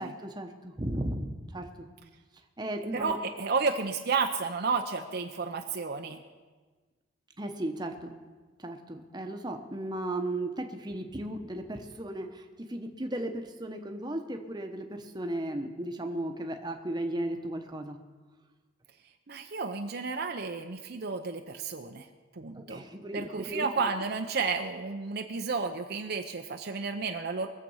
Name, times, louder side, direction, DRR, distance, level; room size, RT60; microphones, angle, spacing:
voice 1, 0.0-1.9 2.6-3.2 7.4-8.2 8.6-18.0 22.5-23.9, right 1 dB, 20° right, 4 dB, 1.0 m, -36 dB
voice 2, 2.9-6.2 19.3-22.1 22.3-22.8 23.1-27.5, right 4 dB, 50° right, 5 dB, 0.6 m, -32 dB
21.5 x 7.5 x 5.5 m, 1.4 s
head